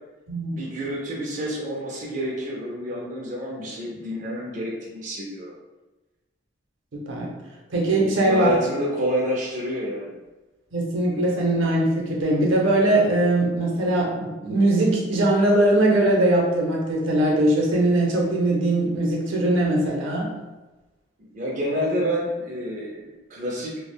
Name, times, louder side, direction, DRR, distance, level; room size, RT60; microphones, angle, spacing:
voice 1, 0.5-5.5 8.2-10.2 21.2-23.9, equal, 40° right, -3 dB, 0.4 m, -28 dB
voice 2, 6.9-7.3 7.7-8.5 10.7-20.3, right 1 dB, 80° right, -2 dB, 0.7 m, -21 dB
3.3 x 2.0 x 2.2 m, 1.1 s
head